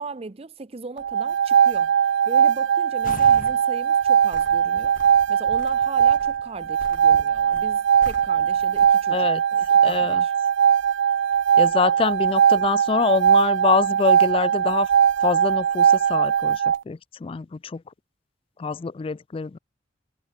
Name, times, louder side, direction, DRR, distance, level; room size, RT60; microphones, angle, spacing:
voice 1, 0.0-1.9 2.3-5.0 5.3-10.3, right 3 dB, 35° right, 0.6 m, -38 dB
sound 1, 1.0-16.8, right 8 dB, 90° right, 0.3 m, -20 dB
sound 2, 3.0-3.6 4.0-8.9, left 3 dB, 50° left, 0.7 m, -42 dB
voice 2, 9.1-9.4 9.8-10.2 11.6-14.9 15.2-17.8 18.6-19.6, left 5 dB, 30° left, 0.3 m, -25 dB
head